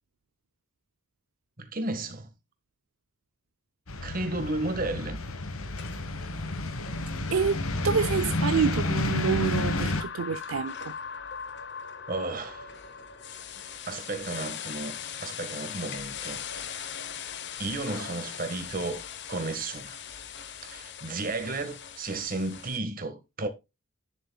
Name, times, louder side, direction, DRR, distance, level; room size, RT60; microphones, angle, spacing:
voice 1, 1.6-2.3 4.0-5.2 12.1-12.7 13.9-17.0 17.6-20.0 20.6-23.5, right 2 dB, 40° right, 1.7 m, -33 dB
sound 1, 3.9-10.0, left 2 dB, 75° left, 1.5 m, -30 dB
sound 2, 5.4-22.8, left 8 dB, 55° left, 1.0 m, -41 dB
voice 2, 7.3-10.9, right 6 dB, 75° right, 0.5 m, -28 dB
10.0 x 7.5 x 2.3 m
head